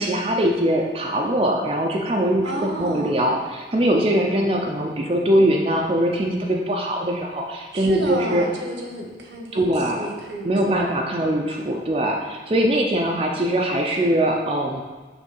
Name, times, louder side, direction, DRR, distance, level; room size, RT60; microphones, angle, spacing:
voice 1, 0.0-8.5 9.5-10.1 10.4-14.8, right 1 dB, 30° right, 0 dB, 0.5 m, -22 dB
voice 2, 2.4-3.2 7.7-10.5, right 1 dB, 85° right, 1 dB, 1.1 m, -31 dB
6.3 x 3.2 x 5.4 m, 1.3 s
head